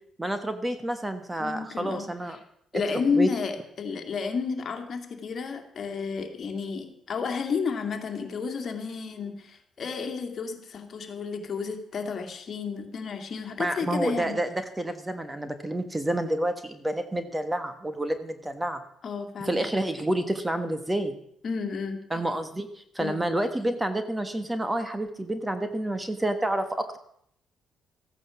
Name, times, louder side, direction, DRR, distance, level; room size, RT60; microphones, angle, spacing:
voice 1, 0.2-2.4 2.7-3.3 13.6-14.5 14.8-18.8 19.4-21.1 22.1-22.7 22.9-27.0, right 1 dB, 15° right, 9 dB, 1.5 m, -29 dB
voice 2, 1.4-2.4 2.7-14.3 19.0-19.6 21.4-22.0 23.0-23.2, left 5 dB, 50° left, 5 dB, 2.4 m, -31 dB
14.5 x 9.2 x 7.1 m, 0.70 s
cardioid pair, 90°, 0 cm